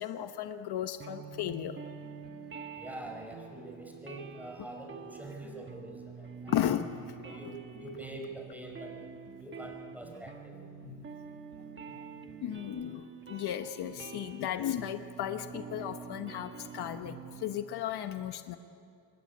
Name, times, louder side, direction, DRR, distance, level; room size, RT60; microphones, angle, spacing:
voice 1, 0.0-1.8 6.5-6.9 10.9-11.0 12.4-18.6, left 11 dB, 65° left, 8 dB, 1.2 m, -35 dB
sound 1, 1.0-17.6, right 6 dB, 25° right, 1.4 m, -47 dB
voice 2, 2.8-6.5 7.2-9.0 9.4-10.6, right 1 dB, 5° right, 2 dB, 4.9 m, -45 dB
26.0 x 22.5 x 9.8 m, 2.4 s
cardioid pair, 145°, 42 cm